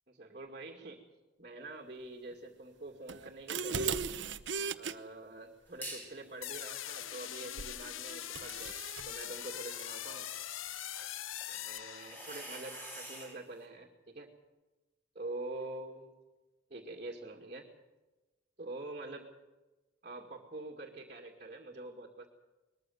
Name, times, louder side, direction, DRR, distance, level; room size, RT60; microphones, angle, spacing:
voice 1, 0.1-1.0 1.4-4.1 4.7-10.3 11.5-14.3 15.2-16.1 16.7-17.7 18.6-19.3 20.0-22.3, right 2 dB, 40° right, 1 dB, 2.4 m, -45 dB
sound 1, 3.1-4.9 7.6-7.8 8.3-9.1, right 5 dB, 70° right, 1.0 m, -36 dB
sound 2, 5.8-6.2 6.6-13.4, right 1 dB, 10° left, 5.3 m, -50 dB
sound 3, 6.4-12.6, left 11 dB, 90° left, 0.7 m, -42 dB
21.5 x 14.5 x 9.2 m, 1.1 s
head